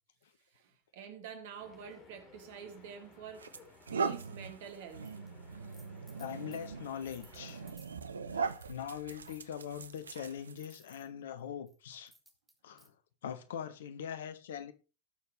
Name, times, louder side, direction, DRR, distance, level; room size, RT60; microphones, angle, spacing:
voice 1, 0.5-3.6 3.9-5.1, right 7 dB, 55° right, 2.5 m, -47 dB
sound 1, 1.6-7.7, left 4 dB, 30° left, 3.9 m, -59 dB
sound 2, 2.6-2.8 3.3-10.7, right 5 dB, 70° right, 0.9 m, -40 dB
sound 3, 4.9-5.3 5.6-8.0 8.4-8.8 9.1-11.1 11.7-12.9, right 2 dB, 10° right, 2.8 m, -63 dB
voice 2, 6.2-7.6 8.3-12.1 12.6-12.9 13.2-14.7, left 9 dB, 60° left, 1.3 m, -42 dB
18.5 x 7.0 x 3.3 m
figure-of-eight pair, 90°, 0 cm